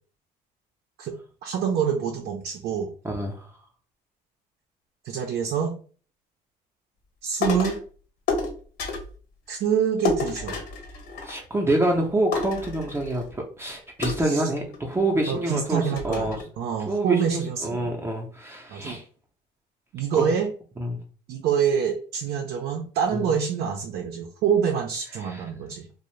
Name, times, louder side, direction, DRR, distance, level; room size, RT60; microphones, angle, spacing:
voice 1, 1.4-2.9 5.0-5.8 7.2-7.8 9.5-10.6 14.2-14.4 15.3-17.9 18.7-19.0 19.9-20.5 21.3-25.9, right 7 dB, 70° right, 3 dB, 0.5 m, -26 dB
voice 2, 3.0-3.5 11.2-16.4 16.9-19.0 20.1-20.3 20.8-21.0 23.1-23.2 25.2-25.4, right 1 dB, 15° right, 0 dB, 0.5 m, -27 dB
sound 1, 7.4-7.9 8.3-9.2 10.0-11.6 11.9-12.0 12.3-13.3 14.0-15.0 15.5-15.6 16.0-16.4, left 4 dB, 70° left, 1.0 m, -30 dB
2.5 x 2.0 x 3.0 m, 0.41 s
cardioid pair, 110°, 17 cm